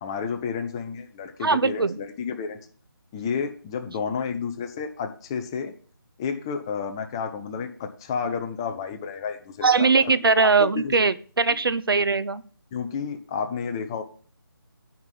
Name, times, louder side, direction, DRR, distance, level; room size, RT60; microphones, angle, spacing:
voice 1, 0.0-2.6 3.1-5.7 6.2-10.9 12.7-14.0, left 6 dB, 10° left, 7 dB, 0.5 m, -31 dB
voice 2, 1.4-2.0 9.6-12.4, right 4 dB, 70° right, 14 dB, 0.8 m, -21 dB
9.4 x 5.3 x 5.9 m, 0.43 s
figure-of-eight pair, 160°, 12 cm